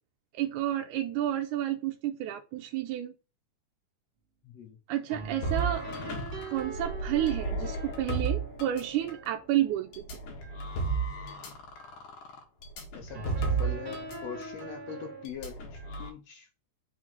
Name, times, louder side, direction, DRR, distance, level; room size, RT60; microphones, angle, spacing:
voice 1, 0.3-3.1 4.9-5.9 6.5-10.0, right 12 dB, 85° right, 2.1 m, -30 dB
voice 2, 4.4-4.8 12.9-16.5, left 7 dB, 65° left, 2.1 m, -42 dB
sound 1, 5.1-10.4 13.1-15.3, right 3 dB, 40° right, 2.0 m, -42 dB
sound 2, 5.4-9.3 9.9-14.2 14.4-14.6 15.2-16.1, right 4 dB, 90° left, 3.1 m, -33 dB
5.9 x 3.9 x 6.1 m
omnidirectional pair, 3.5 m